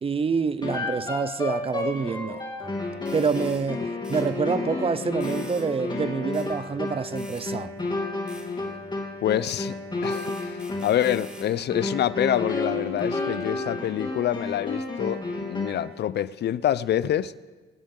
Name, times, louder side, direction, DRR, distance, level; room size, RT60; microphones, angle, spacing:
voice 1, 0.0-2.4 3.1-7.7, right 5 dB, 30° right, 0.5 m, -27 dB
sound 1, 0.6-15.9, left 2 dB, 25° left, 3.0 m, -31 dB
sound 2, 3.1-3.6 4.0-4.3 5.2-5.7 6.3-6.5 7.2-7.4 8.3-8.5 9.4-9.6 10.1-11.5, equal, 5° right, 4.0 m, -46 dB
voice 2, 9.2-9.8 10.0-17.4, left 11 dB, 60° left, 0.5 m, -26 dB
26.0 x 11.5 x 3.7 m
cardioid pair, 90°, 20 cm